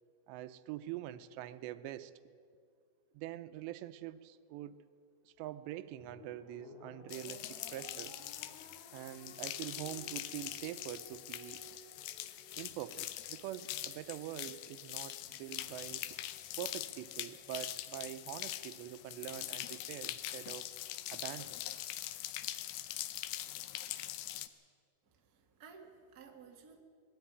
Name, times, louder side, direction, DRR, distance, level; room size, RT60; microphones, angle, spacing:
voice 1, 0.3-2.1 3.1-4.8 5.3-8.2 8.9-11.6 12.6-16.2 16.6-20.7 21.1-21.6, right 13 dB, 85° right, 12 dB, 2.9 m, -45 dB
sound 1, 6.0-12.5, left 2 dB, 55° left, 3.8 m, -57 dB
sound 2, 7.1-24.5, left 14 dB, 75° left, 2.3 m, -43 dB
voice 2, 25.0-26.8, right 5 dB, 65° right, 2 dB, 0.9 m, -56 dB
21.0 x 13.0 x 9.4 m, 2.2 s
omnidirectional pair, 4.9 m